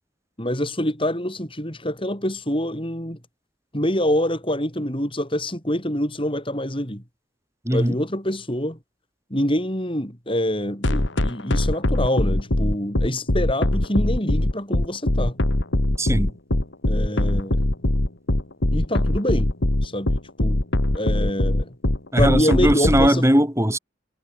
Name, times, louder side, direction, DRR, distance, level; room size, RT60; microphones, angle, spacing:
voice 1, 0.4-3.2 3.7-7.0 7.7-8.8 9.3-15.4 16.9-17.7 18.7-19.5 19.8-20.1 20.4-20.6 20.9-21.7 22.2-23.2, left 1 dB, 25° left, 7.3 m, -25 dB
sound 1, 10.8-23.1, left 1 dB, 65° left, 2.0 m, -21 dB
voice 2, 16.0-16.3 22.1-23.8, equal, 15° right, 7.5 m, -19 dB
head